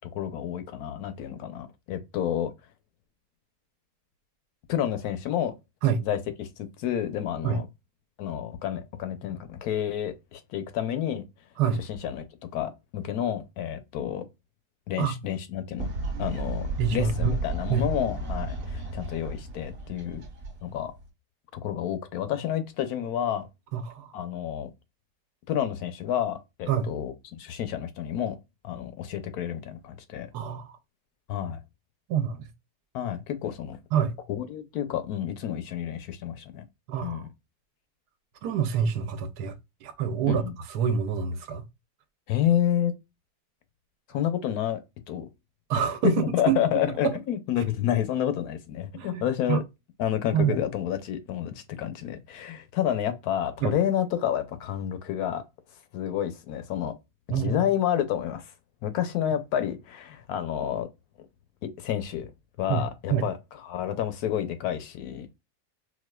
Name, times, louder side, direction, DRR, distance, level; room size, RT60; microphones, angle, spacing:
voice 1, 0.1-2.5 4.7-5.5 6.0-7.7 8.2-11.2 11.8-12.2 12.5-14.2 14.9-15.9 16.2-20.2 20.6-20.9 21.5-23.5 24.1-24.7 25.5-28.4 28.6-30.3 31.3-31.6 32.9-33.8 34.3-36.6 37.0-37.3 40.3-40.5 42.3-42.9 44.1-44.8 45.1-45.3 46.0-49.6 50.0-55.4 55.9-56.9 57.3-58.5 58.8-60.9 61.8-62.3 62.6-65.3, left 10 dB, 75° left, 1.1 m, -29 dB
Fowl, 15.8-21.1, right 2 dB, 45° right, 0.9 m, -33 dB
voice 2, 16.8-17.3 17.7-17.9 23.7-24.1 26.7-26.9 30.3-30.8 32.1-32.5 33.9-34.1 36.9-37.2 38.4-39.5 39.8-40.4 40.7-41.7 45.7-46.1 46.5-46.6 47.0-47.2 47.6-47.7 48.9-49.2 49.5-49.6 50.3-50.6 53.6-53.7 57.3-57.6 62.7-62.8 63.1-63.3, right 8 dB, 90° right, 1.2 m, -26 dB
4.3 x 2.4 x 2.2 m
omnidirectional pair, 1.7 m